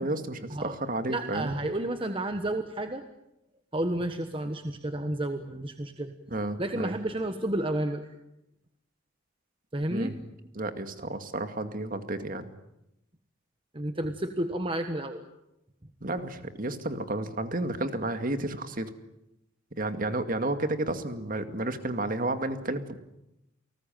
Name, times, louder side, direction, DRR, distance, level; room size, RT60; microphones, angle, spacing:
voice 1, 0.0-1.6 6.3-7.0 9.9-10.1 10.6-12.5 16.0-18.9 19.8-23.0, right 2 dB, 45° right, 8 dB, 2.2 m, -31 dB
voice 2, 1.1-3.0 3.7-6.1 6.6-8.0 9.7-10.1 13.7-15.2, right 1 dB, 25° right, 7 dB, 1.3 m, -31 dB
29.0 x 19.5 x 9.2 m, 0.86 s
head